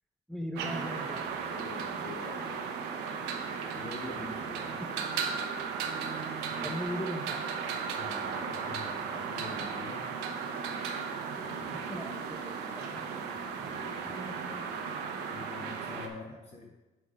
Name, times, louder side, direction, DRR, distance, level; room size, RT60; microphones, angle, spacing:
voice 1, 0.3-1.2 6.6-7.4 11.9-13.1 13.6-13.7, equal, ahead, 3 dB, 0.5 m, -38 dB
sound 1, 0.6-16.1, right 6 dB, 90° right, 0.8 m, -36 dB
voice 2, 1.5-2.7 3.7-4.8 6.6-6.8 7.9-10.5 11.3-11.7 13.6-16.8, left 3 dB, 40° left, 0 dB, 0.9 m, -46 dB
7.9 x 3.7 x 5.0 m, 1.1 s
cardioid pair, 110°, 17 cm